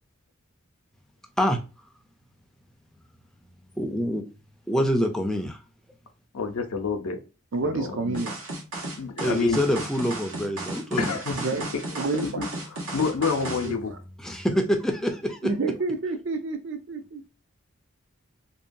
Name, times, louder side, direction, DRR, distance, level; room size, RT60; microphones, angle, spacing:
voice 1, 3.8-4.2 4.7-5.6 9.2-11.2 14.2-15.5, equal, 5° left, 0.4 m, -25 dB
voice 2, 6.3-7.2 7.5-8.2 9.0-9.6 11.0-11.3 12.2-12.5 12.9-13.9, left 5 dB, 90° left, 0.5 m, -28 dB
voice 3, 7.5-8.4 11.3-11.6 11.9-12.4 13.6-14.0 15.4-17.2, right 3 dB, 60° right, 0.5 m, -29 dB
sound 1, 8.1-13.7, right 2 dB, 85° right, 0.9 m, -34 dB
2.7 x 2.2 x 2.5 m
head